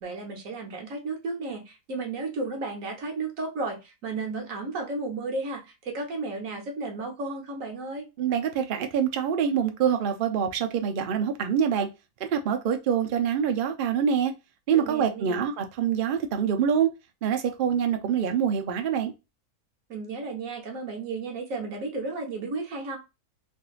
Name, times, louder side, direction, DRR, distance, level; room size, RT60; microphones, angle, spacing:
voice 1, 0.0-8.1 14.7-15.4 19.9-23.0, right 3 dB, 65° right, 1.3 m, -33 dB
voice 2, 8.2-11.9 12.2-14.3 14.7-16.9 17.2-19.1, right 8 dB, 85° right, 0.4 m, -25 dB
3.5 x 2.6 x 2.4 m
omnidirectional pair, 1.6 m